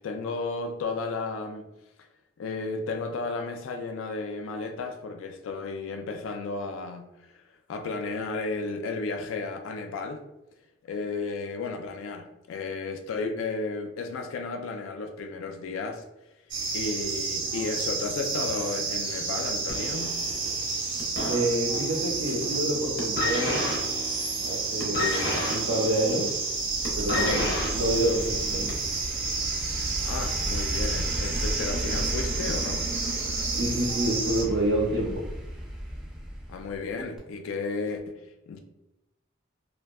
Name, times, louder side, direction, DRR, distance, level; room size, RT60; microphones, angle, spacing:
voice 1, 0.0-1.7 2.4-10.2 10.8-16.0 16.7-20.2 27.2-27.5 30.1-32.9 36.5-38.6, left 3 dB, 80° left, 0.3 m, -33 dB
sound 1, 16.5-34.4, right 4 dB, 45° right, 0.8 m, -31 dB
sound 2, 19.7-22.0 22.3-22.7 23.0-28.9 29.8-29.9, left 1 dB, 50° left, 0.7 m, -32 dB
voice 2, 21.3-23.6 24.5-26.3 26.9-28.8 33.2-35.2, right 1 dB, 85° right, 0.6 m, -28 dB
sound 3, 26.5-36.9 37.2-37.3, equal, 5° right, 0.4 m, -34 dB
2.6 x 2.2 x 2.3 m
head